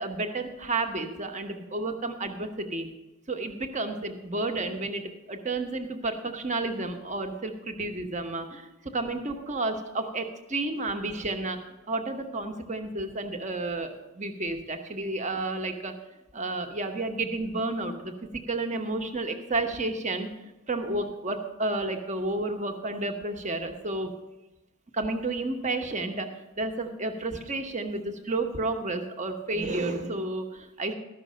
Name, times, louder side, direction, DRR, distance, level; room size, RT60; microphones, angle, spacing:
voice 1, 0.0-2.9 3.3-11.6 11.9-15.9 16.3-18.1 18.5-20.3 20.7-24.1 24.9-26.3 26.6-30.9, right 2 dB, 35° right, 5 dB, 1.1 m, -31 dB
13.0 x 6.2 x 7.5 m, 1.0 s
head